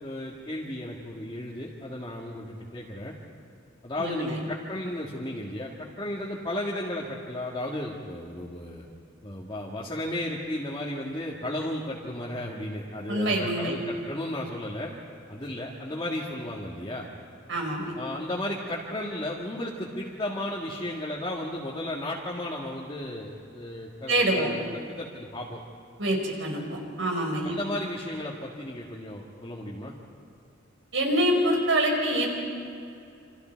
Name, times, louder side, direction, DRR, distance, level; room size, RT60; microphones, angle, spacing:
voice 1, 0.0-3.2 3.8-8.9 9.2-14.9 15.3-17.1 18.0-24.6 25.0-25.6 27.4-29.9, left 1 dB, 25° left, -5 dB, 2.1 m, -34 dB
voice 2, 4.0-4.4 13.1-13.7 17.5-18.0 24.1-24.5 26.0-27.5 30.9-32.3, right 1 dB, 75° right, 1 dB, 5.1 m, -25 dB
28.5 x 26.5 x 4.7 m, 2.6 s
head